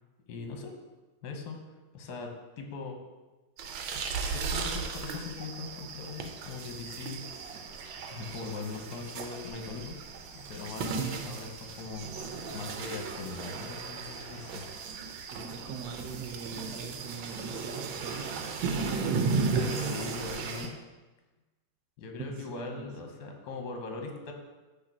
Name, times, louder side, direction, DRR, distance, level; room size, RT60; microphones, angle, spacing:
voice 1, 0.3-0.7 1.2-1.6 1.9-3.0 4.3-7.2 8.1-10.0 10.3-11.4 11.8-12.1 12.5-14.6 19.5-20.8 22.0-24.3, left 4 dB, 65° left, 3 dB, 1.4 m, -40 dB
sound 1, 3.6-20.7, right 4 dB, 85° right, 1.4 m, -36 dB
voice 2, 11.0-11.4 15.1-20.1 22.2-22.9, right 6 dB, 70° right, 5 dB, 1.2 m, -39 dB
6.3 x 3.4 x 5.9 m, 1.2 s
omnidirectional pair, 2.1 m